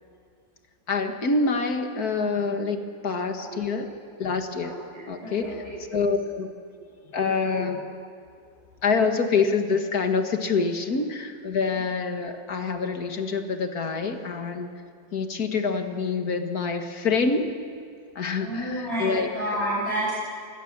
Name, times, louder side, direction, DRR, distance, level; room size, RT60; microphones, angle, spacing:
voice 1, 0.9-3.9 4.2-4.7 5.1-5.6 5.9-6.5 7.1-7.9 8.8-14.7 15.1-17.6 18.2-19.3, left 4 dB, 55° left, 6 dB, 2.2 m, -26 dB
voice 2, 4.6-5.8 7.5-7.6 18.4-20.1, right 1 dB, 30° right, -8 dB, 8.4 m, -30 dB
26.5 x 20.5 x 7.4 m, 2.3 s
omnidirectional pair, 2.0 m